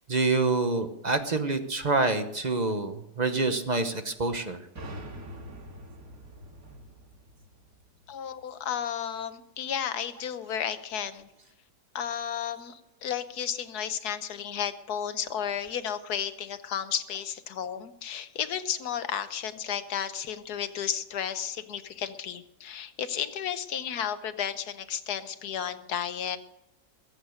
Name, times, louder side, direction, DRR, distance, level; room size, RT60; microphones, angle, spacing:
voice 1, 0.1-4.7, right 3 dB, 30° right, 8 dB, 0.9 m, -27 dB
sound 1, 4.8-8.4, equal, 55° right, 2.5 m, -44 dB
voice 2, 8.1-11.3 11.9-26.4, left 9 dB, 70° left, 12 dB, 1.4 m, -33 dB
21.0 x 8.1 x 6.4 m, 0.88 s
omnidirectional pair, 1.8 m